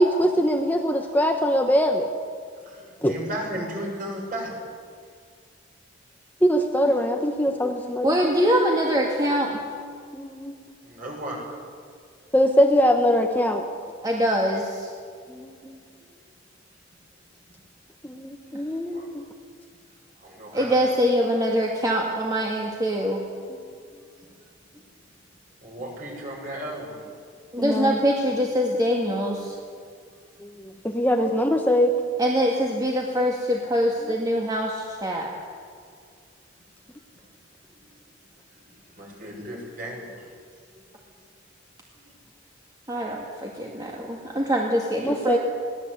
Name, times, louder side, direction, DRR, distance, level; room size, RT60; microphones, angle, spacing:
voice 1, 0.0-2.1 3.0-3.1 6.4-8.2 10.1-10.5 12.3-13.6 15.3-15.8 18.0-19.2 27.6-28.0 30.4-31.9 45.0-45.4, equal, 10° left, 3 dB, 1.2 m, -22 dB
voice 2, 2.6-4.5 10.8-11.6 16.0-16.1 18.9-19.1 20.2-20.7 24.2-24.3 24.7-24.8 25.6-27.0 31.2-31.3 37.7-37.9 38.5-40.3 40.7-40.9 41.9-42.0 42.9-43.1 44.4-44.5, right 1 dB, 45° right, -1 dB, 6.7 m, -36 dB
voice 3, 8.0-9.6 14.0-14.9 20.5-23.2 27.5-29.6 32.2-35.3 42.9-45.4, equal, 20° right, -2 dB, 2.1 m, -24 dB
22.0 x 17.5 x 8.1 m, 2.1 s
head